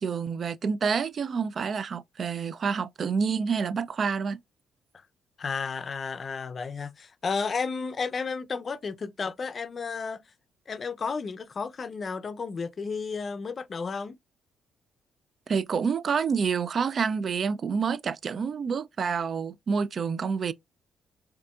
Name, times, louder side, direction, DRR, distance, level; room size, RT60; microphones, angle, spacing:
voice 1, 0.0-4.4 15.5-20.5, right 6 dB, 50° right, 0.3 m, -28 dB
voice 2, 5.4-10.2 10.7-14.2, left 5 dB, 40° left, 0.5 m, -32 dB
5.1 x 2.6 x 2.3 m
cardioid pair, 90°, 0 cm